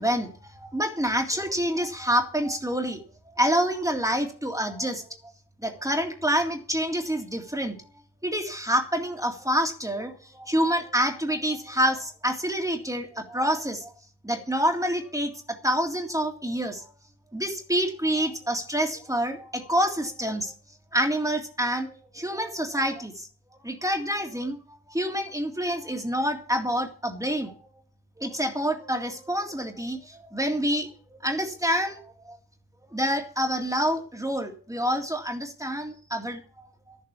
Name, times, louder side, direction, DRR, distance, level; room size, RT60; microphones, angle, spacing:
voice 1, 0.0-3.0 3.4-5.0 5.6-7.8 8.2-13.9 14.2-16.9 17.3-20.5 20.9-23.3 23.6-24.6 24.9-27.5 28.2-32.4 32.9-37.0, equal, 10° right, 3 dB, 2.1 m, -27 dB
13.0 x 7.5 x 8.2 m, 0.40 s
wide cardioid pair, 110°, 41 cm